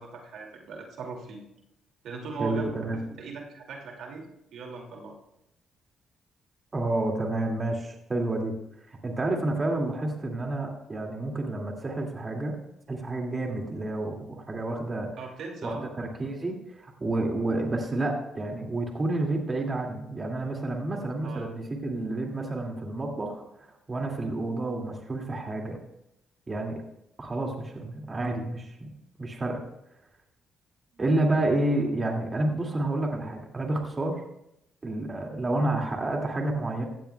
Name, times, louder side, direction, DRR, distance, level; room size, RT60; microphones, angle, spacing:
voice 1, 0.0-1.4 2.0-4.3 4.5-5.2 15.2-15.9 21.2-21.5, right 4 dB, 75° right, 1 dB, 2.3 m, -39 dB
voice 2, 2.4-3.0 6.7-8.5 8.9-12.6 12.9-15.1 15.6-25.8 26.5-26.8 27.2-28.9 29.2-29.6 31.0-34.2 34.8-36.9, right 2 dB, 30° right, 1 dB, 2.1 m, -29 dB
16.5 x 12.5 x 2.2 m, 0.82 s
cardioid pair, 90°, 0 cm